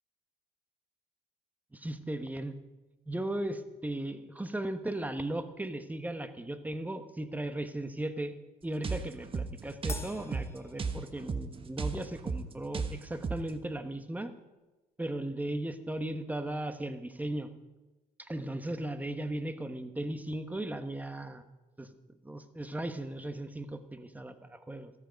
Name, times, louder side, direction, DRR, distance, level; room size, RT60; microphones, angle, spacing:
voice 1, 1.7-2.6 3.1-8.3 8.6-14.3 15.0-17.5 18.3-21.4 21.8-21.9 22.2-24.9, right 1 dB, 10° right, 9 dB, 1.2 m, -37 dB
sound 1, 8.8-13.6, right 4 dB, 30° right, 1.2 m, -36 dB
Crash cymbal, 9.9-11.6, left 3 dB, 15° left, 0.9 m, -46 dB
13.5 x 13.5 x 5.2 m, 1.1 s
cardioid pair, 110°, 17 cm